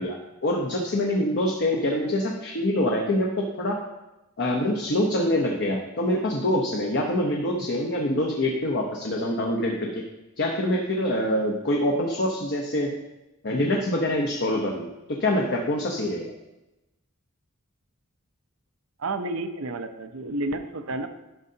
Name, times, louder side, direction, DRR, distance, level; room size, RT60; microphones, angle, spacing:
voice 1, 0.0-3.8 4.4-9.9 10.4-12.9 13.4-16.3, left 1 dB, 55° left, 0 dB, 0.9 m, -25 dB
voice 2, 19.0-21.1, right 2 dB, 75° right, 8 dB, 0.7 m, -30 dB
11.5 x 6.5 x 2.8 m, 0.98 s
head